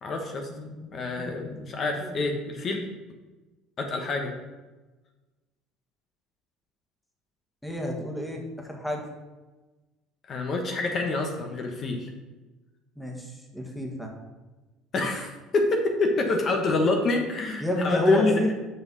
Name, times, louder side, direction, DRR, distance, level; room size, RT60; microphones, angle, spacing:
voice 1, 0.0-0.5 0.9-2.9 3.8-4.3 10.3-12.1 14.9-18.3, left 3 dB, 45° left, 2 dB, 1.2 m, -27 dB
voice 2, 0.5-2.2 7.6-9.1 13.0-13.3 13.5-14.1 17.6-18.5, equal, ahead, 1 dB, 1.7 m, -30 dB
5.9 x 5.6 x 5.4 m, 1.2 s
hypercardioid pair, 70°, 0 cm